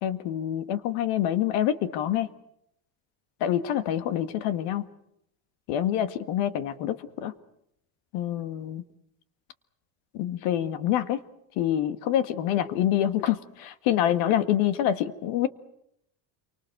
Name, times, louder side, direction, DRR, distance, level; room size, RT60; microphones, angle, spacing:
voice 1, 0.0-2.3 3.4-4.8 5.7-7.3 8.1-8.8 10.1-11.2 11.6-15.5, left 11 dB, 85° left, 11 dB, 1.8 m, -26 dB
28.5 x 24.5 x 6.7 m, 0.77 s
cardioid pair, 160°, 48 cm